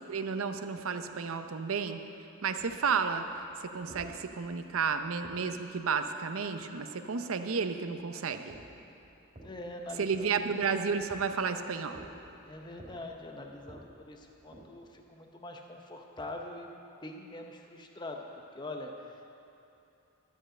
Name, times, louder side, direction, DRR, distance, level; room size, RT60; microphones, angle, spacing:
voice 1, 0.1-2.0 2.4-8.6 10.0-12.0, right 5 dB, 75° right, 8 dB, 0.6 m, -32 dB
sound 1, 2.6-6.0 8.4-15.1, right 1 dB, 30° right, 2.2 m, -54 dB
voice 2, 9.4-10.5 12.5-16.7 17.0-19.2, left 2 dB, 20° left, 2 dB, 0.7 m, -43 dB
12.5 x 5.4 x 8.6 m, 2.8 s
head